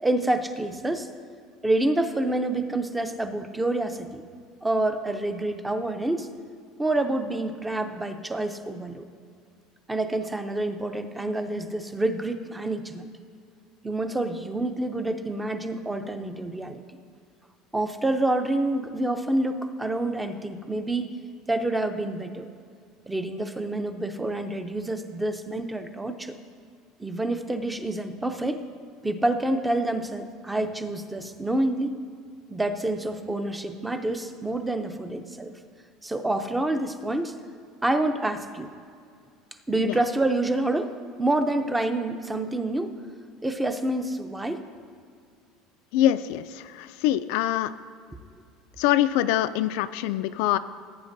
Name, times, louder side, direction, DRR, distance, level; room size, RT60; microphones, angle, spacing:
voice 1, 0.0-1.1 1.6-4.2 4.6-6.3 6.8-9.1 9.9-13.1 13.8-16.8 17.7-21.1 21.5-22.5 23.1-26.4 27.0-28.6 29.0-32.0 32.5-35.5 36.0-37.4 37.8-38.7 39.7-42.9 43.4-44.6, right 2 dB, 5° right, 7 dB, 0.5 m, -27 dB
voice 2, 45.9-47.7 48.8-50.6, left 13 dB, 70° left, 12 dB, 0.3 m, -24 dB
16.5 x 8.8 x 2.6 m, 2.2 s
cardioid pair, 165°, 0 cm